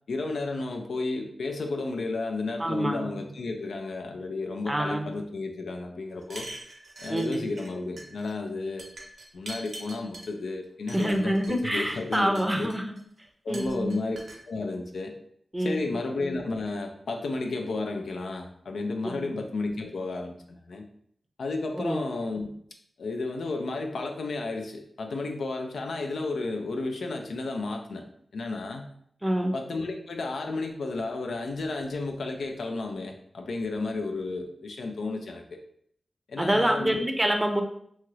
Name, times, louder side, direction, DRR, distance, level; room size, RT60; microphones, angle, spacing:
voice 1, 0.1-6.5 7.0-8.9 9.3-12.7 13.4-14.2 14.5-15.1 15.6-20.9 21.4-22.5 23.0-28.0 28.3-28.9 29.5-35.6 36.3-37.0, left 3 dB, 90° left, 4 dB, 0.4 m, -32 dB
voice 2, 2.6-3.2 4.7-5.1 7.1-7.5 10.9-12.8 13.5-13.9 15.5-15.8 19.1-19.2 21.8-22.0 29.2-29.5 36.4-37.6, right 1 dB, 15° right, 4 dB, 0.5 m, -26 dB
sound 1, 6.2-7.7 8.0-8.3 8.8-10.3 10.9-11.6 12.0-13.0 13.5-14.4, right 2 dB, 80° right, 0.6 m, -43 dB
2.9 x 2.3 x 3.1 m, 0.66 s
cardioid pair, 55°, 0 cm